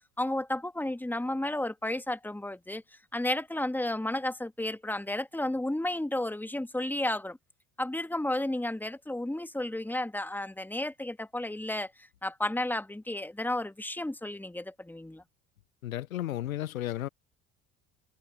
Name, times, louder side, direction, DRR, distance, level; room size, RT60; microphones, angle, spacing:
voice 1, 0.2-2.8 3.1-7.4 7.8-11.9 12.2-15.2, left 1 dB, 5° left, 1.7 m, -32 dB
voice 2, 15.8-17.1, left 13 dB, 85° left, 0.6 m, -33 dB
figure-of-eight pair, 60°, 40 cm